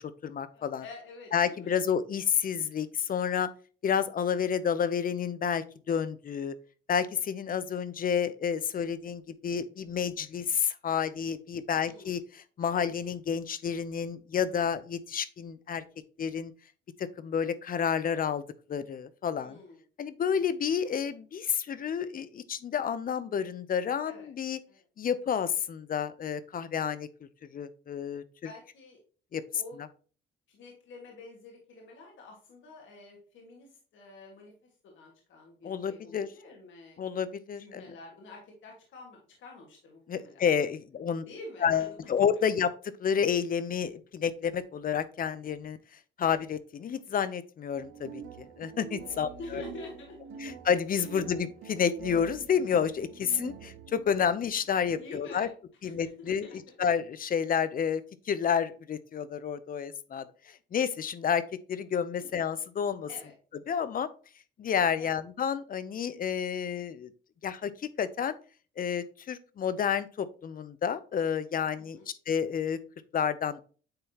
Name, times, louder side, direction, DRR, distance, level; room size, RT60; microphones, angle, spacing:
voice 1, 0.0-0.8 1.3-3.5 3.8-6.5 6.9-15.8 16.2-16.5 17.0-18.4 18.7-19.6 20.0-24.6 25.0-27.1 27.5-28.2 29.3-29.4 35.6-36.3 37.0-37.8 40.1-41.2 41.6-42.7 43.0-45.8 46.2-49.3 50.4-55.5 55.8-63.1 63.7-64.1 64.6-67.1 67.4-67.7 68.0-68.4 68.8-72.0 72.3-72.8 73.1-73.6, left 7 dB, 45° left, 15 dB, 0.6 m, -30 dB
voice 2, 0.5-1.8 11.7-12.2 19.4-19.8 20.4-20.5 24.1-24.3 24.7-24.8 28.4-29.0 29.5-29.8 30.5-34.5 34.8-37.0 37.6-40.5 41.3-42.1 42.4-42.5 49.0-50.4 51.0-51.1 54.9-55.5 55.8-56.8 62.2-62.3 63.1-63.3 65.0-65.2 71.8-72.1, left 2 dB, 75° left, -1 dB, 1.9 m, -48 dB
sound 1, 47.7-54.0, right 7 dB, 85° right, 0.7 m, -45 dB
8.8 x 3.7 x 2.8 m, 0.38 s
cardioid pair, 90°, 20 cm